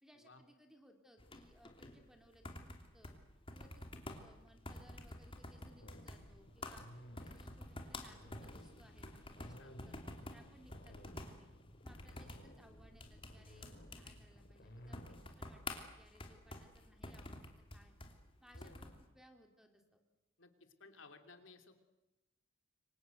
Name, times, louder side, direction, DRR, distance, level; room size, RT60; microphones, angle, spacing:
voice 1, 0.0-3.2 3.5-3.8 4.2-6.9 7.2-9.5 9.8-11.5 11.8-17.9 18.4-20.0, equal, 5° right, 4 dB, 3.2 m, -65 dB
sound 1, 1.2-19.0, left 2 dB, 25° left, 3.0 m, -51 dB
sound 2, 5.8-15.3, equal, 55° left, 4.8 m, -57 dB
voice 2, 20.4-21.7, left 3 dB, 75° left, 7 dB, 3.2 m, -59 dB
29.0 x 24.5 x 8.0 m, 0.99 s
head